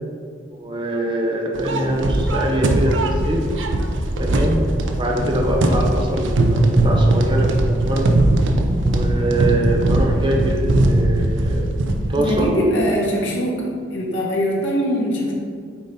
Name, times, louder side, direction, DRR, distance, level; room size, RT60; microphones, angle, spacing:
voice 1, 0.6-3.5 4.2-8.2 8.8-11.8 12.1-12.5, right 1 dB, 25° right, 0 dB, 0.8 m, -23 dB
sound 1, 1.6-12.5, right 1 dB, 85° right, 0.7 m, -19 dB
voice 2, 12.2-15.3, equal, 85° left, -3 dB, 1.6 m, -22 dB
8.8 x 4.0 x 4.2 m, 2.1 s
head